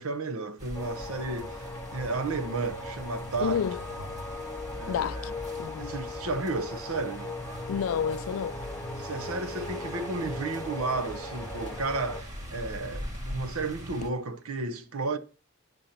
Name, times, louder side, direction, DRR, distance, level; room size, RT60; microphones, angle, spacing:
voice 1, 0.0-3.6 4.7-5.3 5.8-7.4 9.0-15.2, right 3 dB, 80° right, 0.8 m, -33 dB
sound 1, 0.6-14.1, equal, 35° right, 1.6 m, -41 dB
sound 2, 0.7-12.2, left 2 dB, 10° left, 0.6 m, -39 dB
voice 2, 3.4-4.1 4.9-5.3 5.6-5.9 7.7-8.6, left 7 dB, 75° left, 0.4 m, -30 dB
9.9 x 5.1 x 4.3 m
head